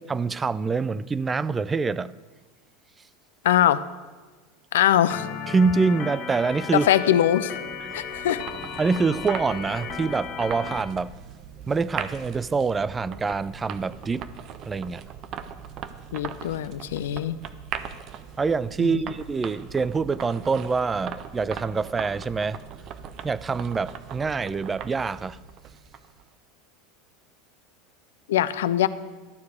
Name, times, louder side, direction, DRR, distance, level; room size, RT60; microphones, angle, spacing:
voice 1, 0.1-2.1 5.5-6.9 7.8-8.0 8.8-11.1 11.7-14.3 14.6-15.0 18.4-22.6 23.2-25.4, right 4 dB, 20° right, 0.3 m, -25 dB
voice 2, 3.4-3.8 4.7-5.3 6.7-7.5 7.9-8.4 16.1-17.4 18.8-19.0 28.3-28.9, left 11 dB, 75° left, 0.4 m, -22 dB
Organ, 5.1-10.8, left 7 dB, 45° left, 1.4 m, -35 dB
sound 1, 7.2-26.2, right 8 dB, 45° right, 0.7 m, -40 dB
12.0 x 4.7 x 8.3 m
hypercardioid pair, 85°, 0 cm